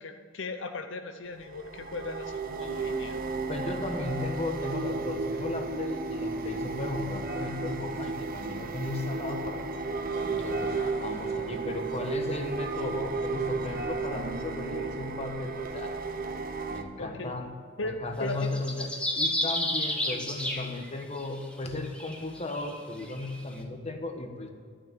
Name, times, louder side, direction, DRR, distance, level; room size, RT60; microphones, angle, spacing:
voice 1, 0.0-3.2 17.0-17.3 17.8-18.5, left 3 dB, 75° left, 6 dB, 0.8 m, -37 dB
sound 1, 1.4-16.8, right 3 dB, 50° right, 0.9 m, -33 dB
voice 2, 3.5-15.9 16.7-17.5 17.8-24.5, left 2 dB, 35° left, 4 dB, 1.2 m, -36 dB
sound 2, 18.3-21.3 21.8-23.4, left 1 dB, 5° left, 1.2 m, -31 dB
12.0 x 6.5 x 9.0 m, 2.1 s
head